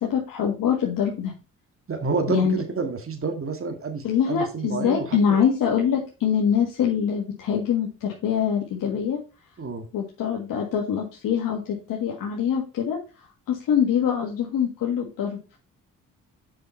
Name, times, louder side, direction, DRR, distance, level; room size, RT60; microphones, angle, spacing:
voice 1, 0.0-1.3 2.3-2.6 4.0-9.2 9.9-15.4, left 8 dB, 80° left, -1 dB, 1.7 m, -24 dB
voice 2, 1.9-5.1 9.6-9.9, right 4 dB, 40° right, 5 dB, 1.9 m, -29 dB
6.7 x 5.6 x 4.5 m, 0.33 s
cardioid pair, 65°, 33 cm